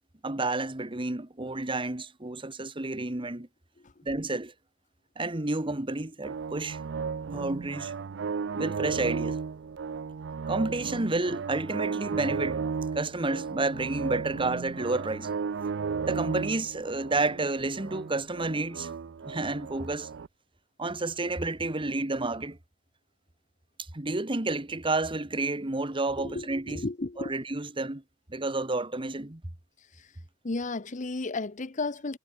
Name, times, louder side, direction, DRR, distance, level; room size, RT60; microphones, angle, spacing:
voice 1, 0.2-3.5 4.0-4.5 5.2-6.8 7.3-7.9 8.6-9.4 10.5-12.6 12.9-15.3 16.0-18.9 19.2-20.1 20.8-22.6 23.9-26.8 27.2-28.0 28.3-29.4, right 2 dB, 25° right, 1.5 m, -30 dB
sound 1, 6.2-20.3, right 5 dB, 65° right, 0.5 m, -34 dB
voice 2, 26.2-27.3 30.0-30.1 30.4-32.2, left 3 dB, 40° left, 0.9 m, -33 dB
head